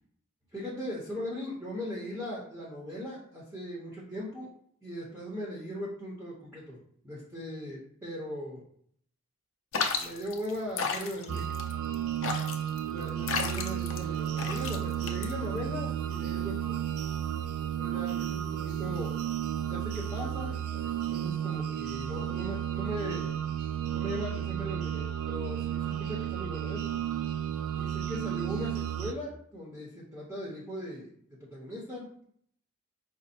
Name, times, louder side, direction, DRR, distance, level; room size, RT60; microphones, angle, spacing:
voice 1, 0.5-4.5 4.8-6.8 7.0-8.6 9.9-11.5 12.9-16.8 17.6-19.2 19.7-23.3 23.9-26.8 27.8-31.1 31.4-32.1, equal, 10° right, -6 dB, 0.9 m, -39 dB
sound 1, 9.7-15.7, left 5 dB, 65° left, 0.6 m, -34 dB
sound 2, 11.3-29.1, right 10 dB, 85° right, 0.3 m, -33 dB
5.1 x 2.1 x 4.2 m, 0.63 s
head